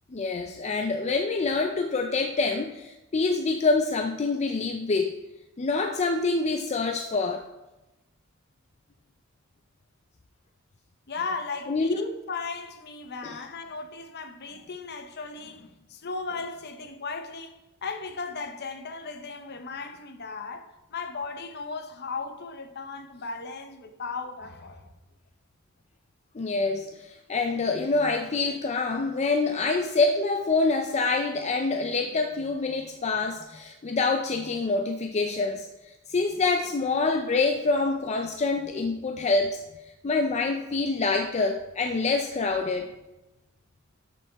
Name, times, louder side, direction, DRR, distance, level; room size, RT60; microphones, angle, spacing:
voice 1, 0.1-5.2 5.6-7.4 11.7-12.0 13.2-13.3 26.3-35.7 36.1-39.6 40.0-42.9, left 3 dB, 35° left, 0.5 m, -26 dB
voice 2, 11.1-24.9, left 4 dB, 55° left, 0.8 m, -36 dB
12.5 x 6.1 x 3.5 m
head